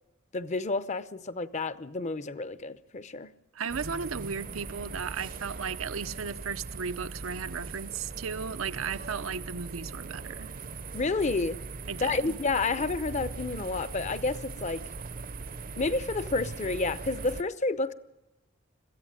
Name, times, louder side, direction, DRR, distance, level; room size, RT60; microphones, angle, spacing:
voice 1, 0.3-3.3 10.9-11.6 12.0-14.8 15.8-17.9, left 3 dB, 35° left, 0.7 m, -30 dB
voice 2, 3.5-10.5 11.9-12.4, right 6 dB, 85° right, 0.8 m, -35 dB
sound 1, 3.7-17.4, right 4 dB, 45° right, 0.7 m, -40 dB
22.0 x 15.0 x 8.9 m
head